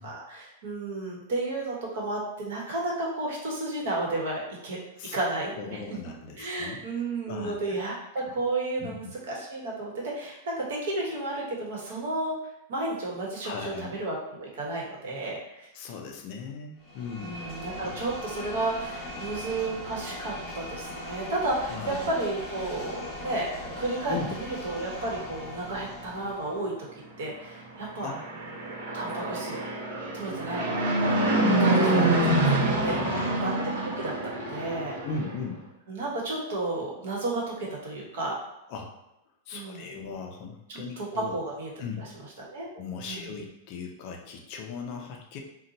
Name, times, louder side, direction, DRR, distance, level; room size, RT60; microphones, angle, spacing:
voice 1, 0.0-4.8 5.1-5.8 6.4-12.3 12.7-15.7 17.2-26.8 27.2-28.2 28.9-29.6 30.1-33.2 33.4-35.0 35.9-38.4 39.5-39.9 40.7-41.7 42.0-42.1 42.4-42.7 43.0-43.3, right 2 dB, 60° right, -3 dB, 1.0 m, -32 dB
voice 2, 5.6-6.8 7.3-7.5 8.8-9.0 13.4-13.9 15.7-17.4 17.8-17.9 21.7-22.1 24.1-24.4 28.0-28.7 32.8-33.5 35.0-35.7 38.7-38.9 39.5-41.4 41.8-42.1 42.7-45.4, left 5 dB, 35° left, 1 dB, 0.4 m, -38 dB
sound 1, 16.8-26.6, left 1 dB, 15° left, 0.8 m, -39 dB
Fixed-wing aircraft airplane, 27.9-35.3, right 1 dB, 75° right, 0.7 m, -26 dB
2.7 x 2.2 x 3.9 m, 0.90 s
supercardioid pair, 175°, 0 cm